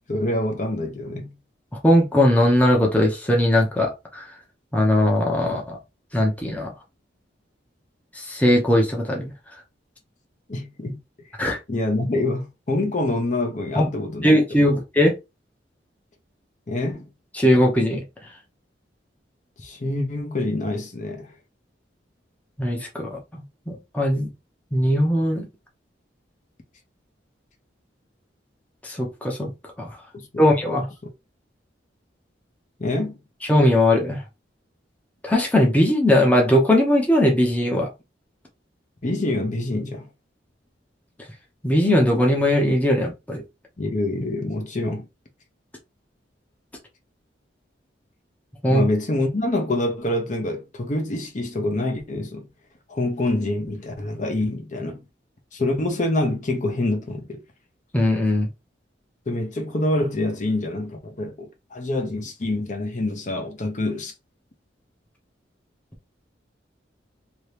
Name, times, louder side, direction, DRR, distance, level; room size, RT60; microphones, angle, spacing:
voice 1, 0.1-1.3 10.5-11.0 11.7-14.7 16.7-17.1 19.6-21.3 30.1-30.8 32.8-33.2 39.0-40.1 43.8-45.1 48.7-52.5 52.9-55.0 55.5-57.4 59.3-64.1, left 2 dB, 45° left, 0.8 m, -26 dB
voice 2, 1.8-4.3 4.7-5.8 6.1-6.7 8.2-9.3 11.4-11.6 13.8-13.9 14.2-15.1 17.3-18.0 22.6-23.2 23.7-24.3 24.7-25.5 28.8-29.5 29.8-29.9 30.4-30.9 33.5-34.2 35.2-37.9 41.6-43.4 48.6-48.8 57.9-58.5, left 1 dB, 10° left, 0.7 m, -19 dB
2.9 x 2.8 x 3.2 m
head